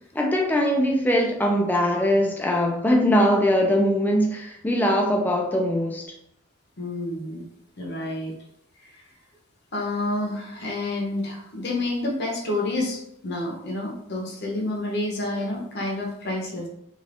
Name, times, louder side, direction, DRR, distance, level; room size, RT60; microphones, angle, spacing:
voice 1, 0.1-6.0, equal, 10° left, 1 dB, 0.3 m, -21 dB
voice 2, 6.8-7.4 7.8-8.3 8.8-9.0 9.7-16.7, left 2 dB, 55° left, -2 dB, 0.8 m, -29 dB
3.3 x 2.5 x 2.5 m, 0.74 s
head